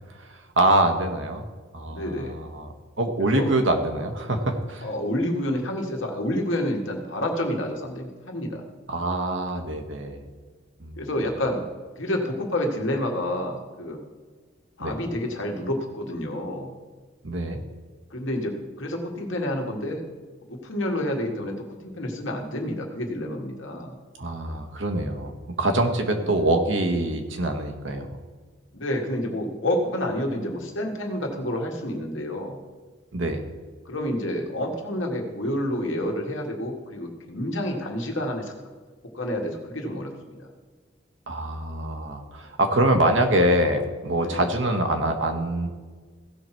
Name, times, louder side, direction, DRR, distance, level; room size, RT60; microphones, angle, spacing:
voice 1, 0.2-1.4 1.7-4.9 8.9-10.2 10.8-11.1 14.8-14.9 17.2-17.6 24.2-28.1 33.1-33.4 41.3-45.7, right 1 dB, 70° right, 5 dB, 1.3 m, -24 dB
voice 2, 1.9-2.4 3.3-3.5 4.8-8.6 11.0-11.6 12.0-14.0 14.8-16.7 18.1-20.0 20.5-21.5 21.8-24.0 26.0-26.2 28.7-32.6 33.8-38.5 39.1-40.1 40.4-40.5 44.2-44.4, left 1 dB, 80° left, 2 dB, 1.7 m, -29 dB
16.0 x 5.9 x 4.5 m, 1.4 s
head